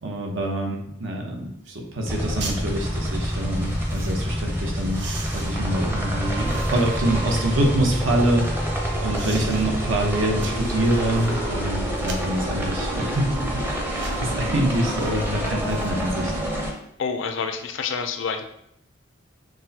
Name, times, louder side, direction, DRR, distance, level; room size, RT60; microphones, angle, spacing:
voice 1, 0.0-5.0 5.3-8.7 9.0-13.6 13.9-16.3, right 1 dB, 80° right, 1 dB, 0.8 m, -25 dB
sound 1, 1.6-1.8 2.1-2.6 3.4-4.2 4.7-7.0 7.5-8.6 9.1-9.6 10.0-11.4 12.0-12.4 13.0-13.2 13.8-14.3 14.9-15.1 15.5-16.3 16.6-16.7, right 4 dB, 60° right, 0.5 m, -41 dB
sound 2, 2.0-16.7, equal, 10° right, 0.5 m, -27 dB
Fixed-wing aircraft airplane, 4.5-14.7, right 1 dB, 45° right, 1.1 m, -40 dB
voice 2, 17.0-18.4, left 5 dB, 70° left, 6 dB, 0.4 m, -28 dB
6.0 x 2.1 x 2.7 m, 0.76 s
head